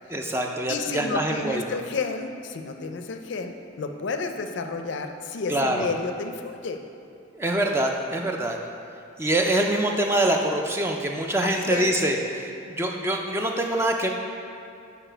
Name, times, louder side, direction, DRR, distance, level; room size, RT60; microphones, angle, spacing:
voice 1, 0.1-1.6 5.5-5.9 7.3-8.6 9.2-14.1, right 1 dB, 10° right, 2 dB, 0.3 m, -25 dB
voice 2, 0.7-6.8 11.4-11.9, left 4 dB, 65° left, 6 dB, 0.4 m, -31 dB
6.9 x 4.7 x 4.4 m, 2.5 s
head